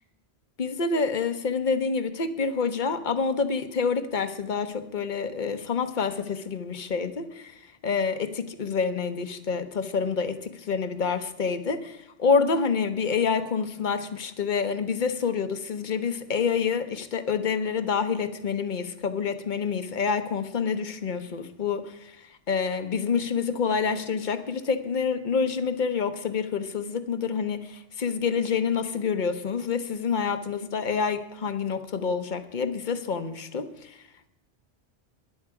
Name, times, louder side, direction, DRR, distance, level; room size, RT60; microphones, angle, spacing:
voice 1, 0.6-7.5 7.8-22.2 22.5-34.0, left 5 dB, 45° left, 10 dB, 0.9 m, -27 dB
13.0 x 10.5 x 4.8 m, 0.83 s
omnidirectional pair, 1.2 m